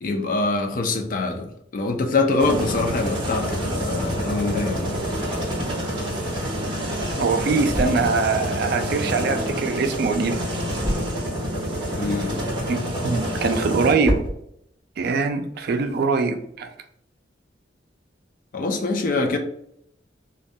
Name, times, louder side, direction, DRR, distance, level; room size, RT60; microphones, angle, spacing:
voice 1, 0.0-4.9 12.0-12.3 18.5-19.4, left 3 dB, 50° left, 5 dB, 0.4 m, -24 dB
sound 1, 2.4-13.9, equal, 25° right, 0.8 m, -27 dB
voice 2, 7.2-10.4 12.7-14.2 15.0-16.7, right 4 dB, 55° right, 6 dB, 0.3 m, -23 dB
sound 2, 7.6-16.7, equal, 5° left, 0.8 m, -35 dB
2.2 x 2.2 x 2.6 m, 0.72 s
head